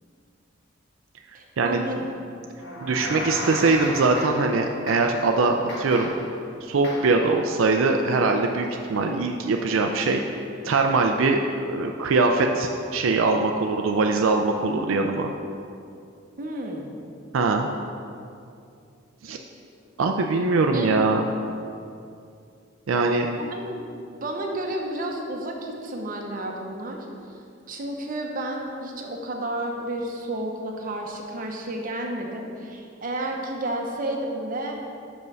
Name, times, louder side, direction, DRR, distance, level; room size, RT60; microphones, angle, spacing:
voice 1, 1.3-2.2 16.4-16.9 20.7-21.1 23.1-27.1 27.7-34.8, right 1 dB, 45° right, 1 dB, 0.8 m, -31 dB
sound 1, 2.6-4.6 4.9-5.3 5.7-6.3 6.8-7.2, left 1 dB, 60° left, 1.3 m, -34 dB
voice 2, 2.8-6.1 6.6-10.2 10.6-15.3 17.3-17.7 19.2-19.4 20.0-21.3 22.9-23.3, right 3 dB, 85° right, 3 dB, 0.4 m, -22 dB
5.5 x 5.3 x 6.2 m, 2.5 s
head